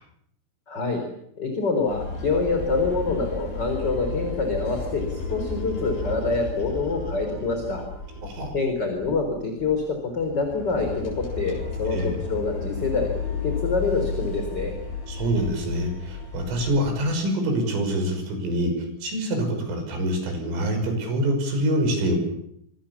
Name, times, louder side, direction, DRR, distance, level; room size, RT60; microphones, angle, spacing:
voice 1, 0.7-1.0 1.4-7.8 8.5-9.8 10.1-14.7, left 4 dB, 25° left, 4 dB, 3.9 m, -26 dB
sound 1, 1.9-8.6 8.9-9.2 9.6-9.7 10.2-16.9, left 4 dB, 60° left, 9.6 m, -33 dB
voice 2, 15.1-18.7 19.0-22.2, right 1 dB, 75° right, 5 dB, 8.5 m, -25 dB
28.5 x 23.0 x 7.2 m, 0.75 s
omnidirectional pair, 5.8 m